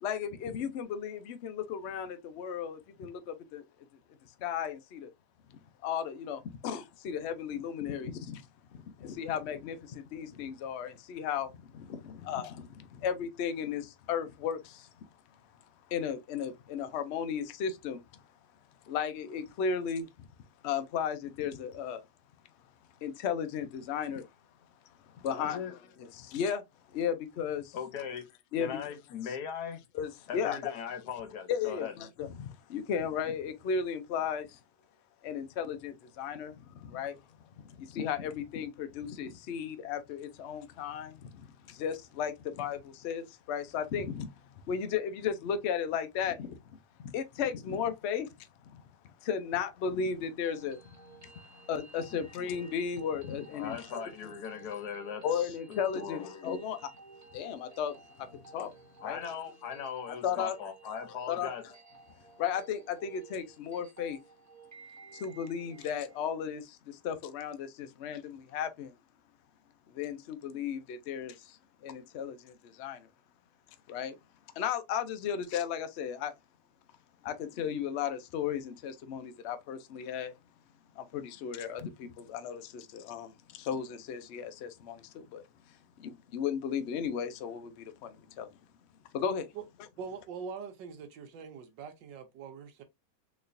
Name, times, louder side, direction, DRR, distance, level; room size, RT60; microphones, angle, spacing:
voice 1, 0.0-3.6 4.4-5.1 5.5-8.5 8.7-14.9 15.9-18.2 18.8-20.3 20.6-22.0 23.0-24.3 25.1-25.6 26.0-26.6 26.9-27.8 28.5-28.8 29.9-30.7 31.5-34.6 35.2-37.2 37.7-44.4 44.7-46.6 47.0-48.8 49.2-50.8 51.2-54.0 55.2-56.9 57.3-58.0 58.3-58.7 59.0-59.2 60.2-60.5 61.3-61.5 62.4-64.2 65.1-68.9 69.9-71.6 71.8-73.1 73.9-74.2 74.6-76.3 77.2-80.3 81.0-85.4 86.0-88.5 89.1-89.5, left 7 dB, 90° left, 0.5 m, -35 dB
voice 2, 25.3-25.8 27.7-28.3 28.6-29.8 30.3-31.9 53.5-56.3 59.0-61.6, left 7 dB, 70° left, 1.2 m, -39 dB
sound 1, 50.2-66.2, right 3 dB, 15° right, 0.5 m, -54 dB
voice 3, 90.0-92.8, right 6 dB, 85° right, 1.4 m, -43 dB
4.0 x 3.1 x 2.5 m
omnidirectional pair, 1.9 m